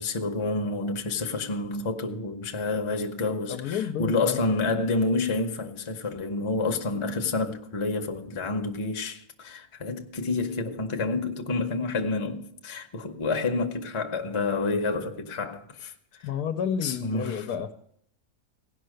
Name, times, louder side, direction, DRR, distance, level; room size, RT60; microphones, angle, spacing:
voice 1, 0.0-16.3 16.8-17.5, left 3 dB, 25° left, 0.7 m, -29 dB
voice 2, 3.5-4.4 16.2-17.7, left 8 dB, 85° left, 1.2 m, -30 dB
16.5 x 5.6 x 6.4 m
omnidirectional pair, 1.6 m